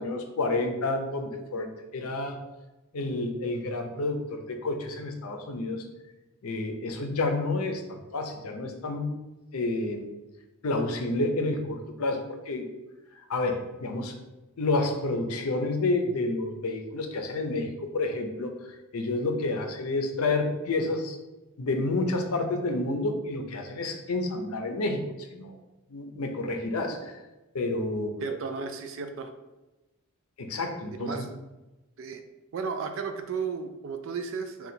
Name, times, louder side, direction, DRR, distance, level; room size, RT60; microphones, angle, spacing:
voice 1, 0.0-1.7 1.9-2.4 2.9-5.9 6.4-9.1 9.5-10.1 10.6-12.7 13.2-14.1 14.6-21.2 21.6-25.6 25.9-27.1 27.5-28.2 30.4-31.2, left 2 dB, 80° left, 5 dB, 0.6 m, -29 dB
voice 2, 28.2-29.3 31.0-31.3 32.0-32.2 32.5-34.7, right 5 dB, 60° right, 7 dB, 0.3 m, -34 dB
3.8 x 2.3 x 4.2 m, 1.1 s
head